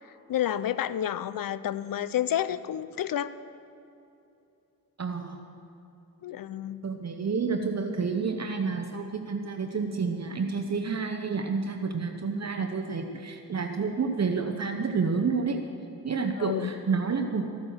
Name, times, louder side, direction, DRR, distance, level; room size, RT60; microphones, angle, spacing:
voice 1, 0.3-3.3 6.2-6.8 16.4-16.7, left 11 dB, 65° left, 15 dB, 0.6 m, -30 dB
voice 2, 5.0-5.4 6.8-15.6 16.0-17.5, right 5 dB, 45° right, 5 dB, 1.0 m, -29 dB
15.0 x 9.7 x 6.4 m, 2.7 s
cardioid pair, 70°, 36 cm